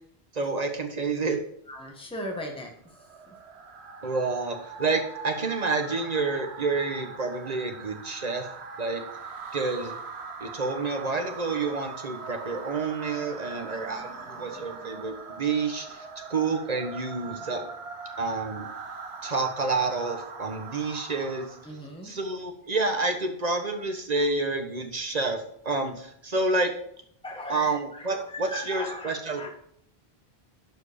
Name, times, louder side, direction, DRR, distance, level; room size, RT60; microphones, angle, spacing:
voice 1, 0.3-1.4 4.0-8.5 8.8-9.0 9.5-10.0 10.4-17.6 18.2-18.7 19.2-21.5 22.0-26.7 27.5-29.5, right 3 dB, 40° right, 5 dB, 1.3 m, -29 dB
voice 2, 1.7-2.7 3.3-3.4 13.5-15.1 17.4-17.7 21.6-22.1 27.2-29.5, equal, 5° left, 1 dB, 1.3 m, -39 dB
sound 1, 2.9-21.8, right 5 dB, 90° right, 1.3 m, -41 dB
11.5 x 5.1 x 5.1 m, 0.67 s
omnidirectional pair, 1.1 m